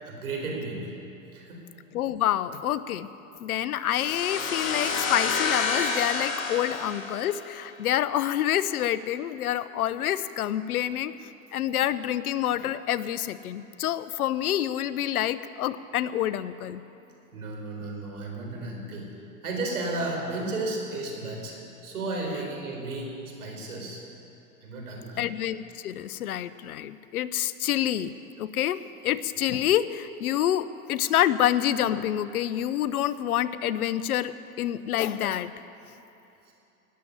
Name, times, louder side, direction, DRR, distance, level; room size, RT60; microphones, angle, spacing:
voice 1, 0.0-0.9 1.3-1.6 17.3-19.1 19.4-21.6 21.8-23.1 23.4-24.0 24.6-25.2 36.5-36.6, right 2 dB, 90° right, 0 dB, 4.2 m, -33 dB
voice 2, 1.9-3.1 3.4-11.1 11.5-16.8 25.2-28.1 28.4-35.5, left 11 dB, 85° left, 15 dB, 0.8 m, -27 dB
sound 1, 3.9-7.6, left 4 dB, 65° left, 2.5 m, -29 dB
18.0 x 7.6 x 9.9 m, 2.8 s
hypercardioid pair, 110°, 43 cm